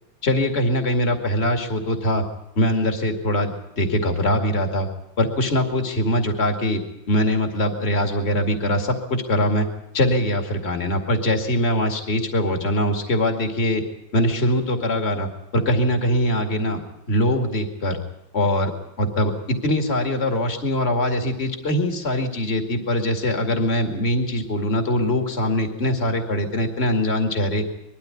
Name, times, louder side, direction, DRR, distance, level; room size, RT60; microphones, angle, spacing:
voice 1, 0.2-2.2 2.6-4.9 5.2-9.7 9.9-13.8 14.1-16.8 17.1-18.0 18.3-18.7 19.0-27.6, left 1 dB, 35° left, 4 dB, 2.5 m, -22 dB
21.5 x 13.5 x 9.7 m, 0.88 s
omnidirectional pair, 2.0 m